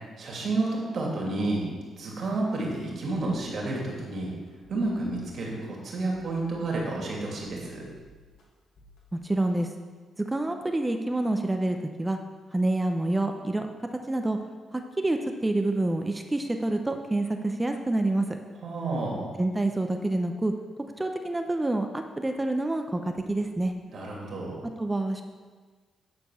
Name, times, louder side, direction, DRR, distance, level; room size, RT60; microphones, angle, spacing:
voice 1, 0.2-1.7 2.0-4.4 4.7-7.8 18.6-19.3 23.9-24.7, right 2 dB, 60° right, -2 dB, 2.6 m, -30 dB
sound 1, 3.9-4.0 4.5-5.4 6.0-7.1 7.4-8.4 8.8-9.0, equal, 75° left, 1.7 m, -55 dB
voice 2, 9.1-9.7 10.3-12.2 12.5-13.7 13.9-14.4 14.7-18.4 19.4-20.5 21.0-23.7 24.8-25.2, right 2 dB, 15° right, 5 dB, 0.7 m, -27 dB
9.7 x 4.5 x 6.3 m, 1.4 s
cardioid pair, 75°, 0 cm